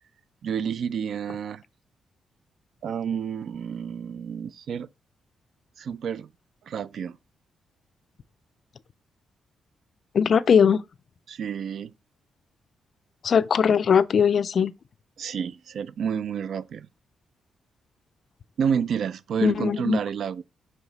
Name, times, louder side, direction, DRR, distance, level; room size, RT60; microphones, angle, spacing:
voice 1, 0.4-1.6 2.8-4.9 5.8-6.3 6.7-7.2 11.3-11.9 15.2-16.9 18.6-20.4, right 7 dB, 60° right, 0.4 m, -29 dB
voice 2, 10.1-10.8 13.2-14.7 19.4-20.0, left 7 dB, 45° left, 0.3 m, -20 dB
5.5 x 5.0 x 4.0 m
wide cardioid pair, 155°, 0 cm